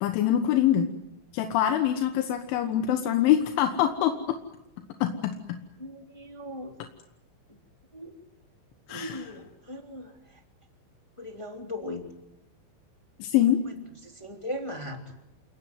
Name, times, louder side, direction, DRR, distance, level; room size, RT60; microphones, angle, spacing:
voice 1, 0.0-0.9 1.3-4.2 5.0-5.6 8.9-9.2 13.2-13.6, left 11 dB, 85° left, 6 dB, 3.8 m, -24 dB
voice 2, 5.8-6.7 7.5-7.6 7.9-8.1 8.9-10.4 11.2-12.1 14.0-15.0, left 1 dB, 10° left, 2 dB, 1.9 m, -38 dB
28.5 x 19.0 x 9.4 m, 0.85 s
omnidirectional pair, 5.4 m